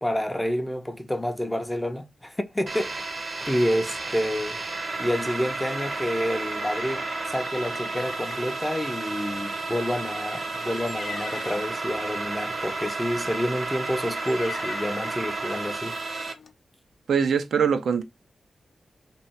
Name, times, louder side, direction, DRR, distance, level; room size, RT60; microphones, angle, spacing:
voice 1, 0.0-3.1 3.5-4.6 5.0-16.0, equal, 10° left, 0.5 m, -28 dB
sound 1, 2.7-16.3, right 3 dB, 45° right, 0.6 m, -32 dB
sound 2, 6.6-8.5 9.8-11.7 12.6-12.8 13.3-13.5 14.2-15.2 15.9-16.0 16.4-16.5, left 5 dB, 65° left, 0.5 m, -41 dB
voice 2, 17.1-18.0, right 6 dB, 85° right, 0.4 m, -22 dB
3.0 x 2.7 x 4.3 m
wide cardioid pair, 110°, 0 cm